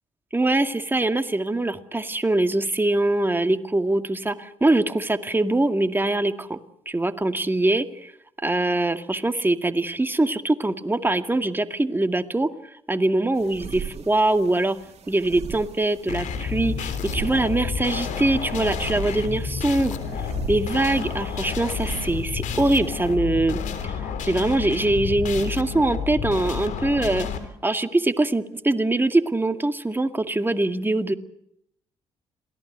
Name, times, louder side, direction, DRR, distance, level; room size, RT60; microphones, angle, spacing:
voice 1, 0.3-6.6 6.9-8.1 8.4-12.5 12.9-14.8 15.1-20.0 20.5-27.3 27.6-31.1, right 2 dB, 15° right, 8 dB, 2.1 m, -23 dB
sound 1, 13.3-23.2, right 7 dB, 55° right, 3.2 m, -40 dB
sound 2, 16.1-27.4, left 7 dB, 75° left, 3.6 m, -30 dB
27.5 x 18.0 x 8.1 m, 0.74 s
supercardioid pair, 60°, 13 cm